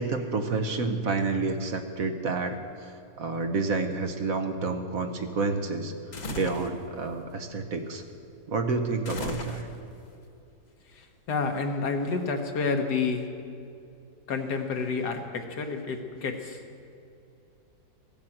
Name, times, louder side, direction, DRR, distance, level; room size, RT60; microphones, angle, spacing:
voice 1, 0.0-5.9 6.3-8.0 8.5-9.7, right 3 dB, 60° right, 6 dB, 1.2 m, -29 dB
sound 1, 6.1-6.7 9.0-10.0, left 2 dB, 35° left, 0.8 m, -36 dB
voice 2, 10.9-13.3 14.3-16.6, left 4 dB, 70° left, 5 dB, 1.6 m, -29 dB
15.5 x 8.7 x 7.8 m, 2.7 s
omnidirectional pair, 1.9 m